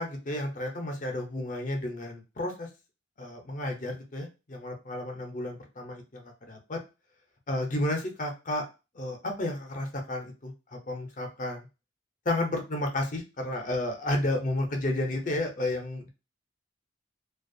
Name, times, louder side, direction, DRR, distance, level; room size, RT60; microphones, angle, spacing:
voice 1, 0.0-2.7 3.2-6.8 7.5-8.6 8.9-11.7 12.3-16.1, left 1 dB, 40° left, 2 dB, 0.6 m, -32 dB
2.4 x 2.3 x 2.6 m, 0.28 s
head